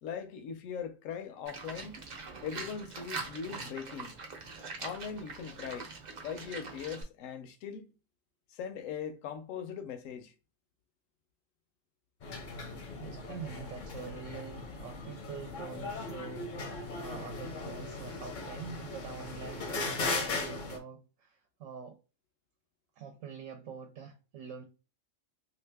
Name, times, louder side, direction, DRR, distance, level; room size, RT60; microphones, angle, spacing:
voice 1, 0.0-2.1 2.4-4.2 4.8-5.9 6.2-7.9 8.5-10.3, left 7 dB, 80° left, 1.0 m, -40 dB
Livestock farm animals working animals, 1.4-7.0, right 4 dB, 50° right, 0.5 m, -43 dB
sound 1, 12.2-20.8, left 3 dB, 50° left, 0.6 m, -38 dB
voice 2, 13.0-22.0 23.0-24.6, right 6 dB, 75° right, 0.9 m, -45 dB
2.7 x 2.3 x 3.3 m
omnidirectional pair, 1.4 m